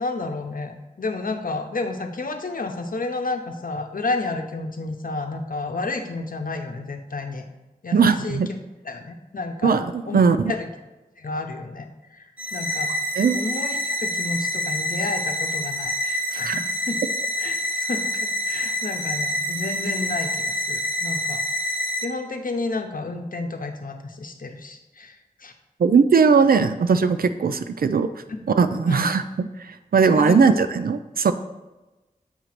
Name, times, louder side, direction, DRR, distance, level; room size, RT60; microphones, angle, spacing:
voice 1, 0.0-7.4 7.8-8.4 8.8-9.7 10.0-10.2 10.5-10.7 11.2-12.9 13.3-17.0 17.4-21.4 22.0-25.5 28.3-28.5 28.9-29.1 30.1-30.6, left 3 dB, 70° left, 5 dB, 0.8 m, -31 dB
voice 2, 7.9-8.5 9.6-10.5 13.2-13.4 16.4-16.5 25.8-28.1 28.5-29.5 29.9-31.3, right 5 dB, 85° right, 10 dB, 0.4 m, -19 dB
sound 1, 12.4-22.1, equal, 10° right, 1.0 m, -27 dB
8.0 x 2.9 x 5.9 m, 1.1 s
wide cardioid pair, 50°, 15 cm